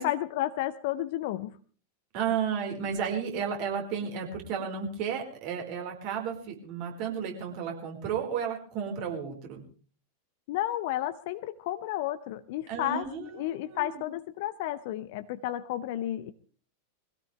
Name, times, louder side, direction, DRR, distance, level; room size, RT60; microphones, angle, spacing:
voice 1, 0.0-1.5 10.5-13.0 13.3-16.3, left 13 dB, 50° left, 11 dB, 0.8 m, -32 dB
voice 2, 2.1-9.6 12.7-14.0, right 7 dB, 45° right, 2 dB, 4.7 m, -33 dB
22.5 x 16.5 x 3.4 m, 0.41 s
figure-of-eight pair, 90°, 0 cm